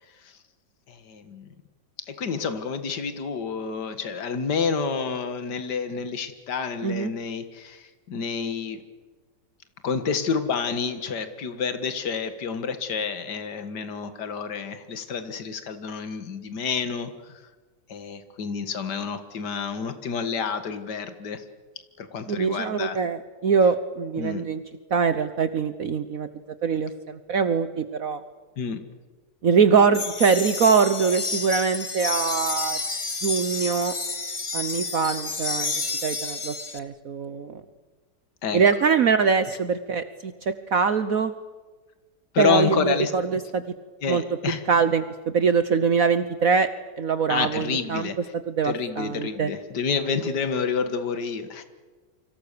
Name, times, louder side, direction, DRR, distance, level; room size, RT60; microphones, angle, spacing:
voice 1, 0.9-1.5 2.1-8.8 9.8-17.3 17.9-21.4 22.0-23.0 24.2-24.4 28.6-28.8 38.4-38.6 42.3-43.1 44.0-44.6 47.3-48.2 48.6-51.6, left 5 dB, 65° left, 9 dB, 2.3 m, -29 dB
voice 2, 22.3-24.6 24.9-26.3 26.6-28.2 29.4-32.8 33.2-33.9 34.5-37.6 38.5-41.3 42.4-43.6 44.1-44.2 44.7-46.7 47.0-48.1 48.5-49.5, right 5 dB, 55° right, 11 dB, 1.3 m, -23 dB
sound 1, 29.9-36.8, left 3 dB, 20° left, 1.1 m, -30 dB
28.5 x 25.5 x 6.8 m, 1.3 s
omnidirectional pair, 1.9 m